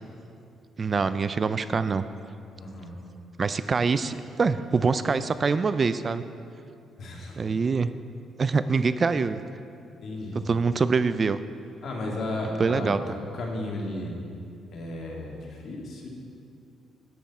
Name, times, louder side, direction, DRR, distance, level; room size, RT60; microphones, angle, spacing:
voice 1, 0.8-2.0 3.4-6.2 7.4-7.9 8.4-9.4 10.3-11.4 12.6-13.0, right 4 dB, 40° right, 13 dB, 0.4 m, -24 dB
voice 2, 2.6-3.0 7.0-7.4 10.0-10.5 11.8-14.1 14.7-16.1, left 1 dB, 60° left, -2 dB, 2.3 m, -34 dB
11.5 x 9.4 x 4.3 m, 2.5 s
cardioid pair, 90°, 0 cm